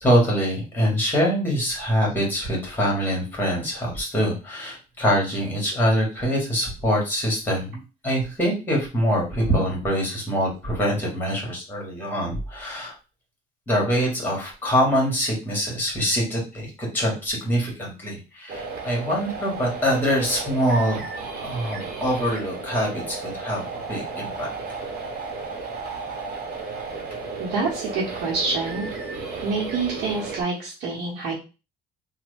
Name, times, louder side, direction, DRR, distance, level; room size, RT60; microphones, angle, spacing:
voice 1, 0.0-12.9 13.7-21.0 21.4-24.5, equal, 10° left, -2 dB, 1.6 m, -24 dB
sound 1, 18.5-30.4, right 4 dB, 60° right, 1.0 m, -34 dB
voice 2, 27.4-28.9 29.4-31.3, right 4 dB, 85° right, -3 dB, 0.9 m, -27 dB
3.0 x 2.2 x 3.3 m, 0.31 s
cardioid pair, 110°, 17 cm